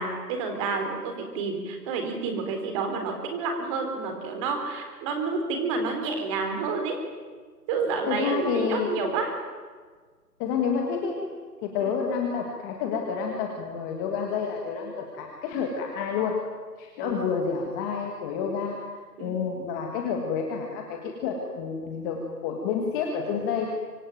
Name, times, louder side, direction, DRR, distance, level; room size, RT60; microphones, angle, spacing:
voice 1, 0.0-7.0 7.7-9.3 11.8-12.0 17.0-17.3 19.2-19.4, right 4 dB, 20° right, 4 dB, 3.8 m, -29 dB
voice 2, 8.1-8.9 10.4-11.3 11.6-16.4 16.8-18.8 19.2-23.7, left 6 dB, 10° left, 1 dB, 1.7 m, -29 dB
25.5 x 23.5 x 9.2 m, 1.5 s
figure-of-eight pair, 155°, 49 cm